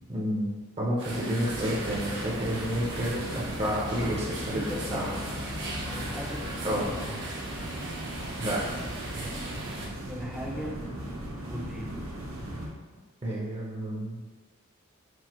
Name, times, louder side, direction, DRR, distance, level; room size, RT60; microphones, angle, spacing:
voice 1, 0.1-4.6 4.9-5.1 6.6-6.9 8.4-8.6 13.2-14.2, equal, 30° right, -5 dB, 0.9 m, -30 dB
sound 1, 1.0-9.9, right 2 dB, 60° right, 1.0 m, -39 dB
sound 2, 1.5-12.7, equal, 85° right, 1.2 m, -37 dB
voice 2, 4.5-5.4 5.8-7.2 9.1-9.6 10.1-10.8 11.4-12.0, equal, ahead, -2 dB, 0.6 m, -38 dB
6.3 x 2.4 x 3.0 m, 1.4 s
head